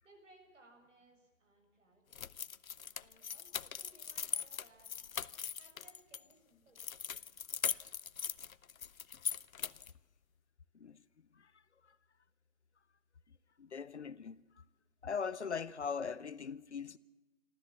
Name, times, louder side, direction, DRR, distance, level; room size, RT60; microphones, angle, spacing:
voice 1, 0.0-2.2 2.9-4.9 5.6-6.8, right 2 dB, 65° right, 6.9 m, -64 dB
sound 1, 2.1-6.2 6.8-10.0, left 7 dB, 90° left, 0.7 m, -40 dB
voice 2, 13.6-14.6 15.0-17.0, left 6 dB, 55° left, 0.8 m, -40 dB
28.0 x 13.5 x 7.1 m
figure-of-eight pair, 165°, 40 cm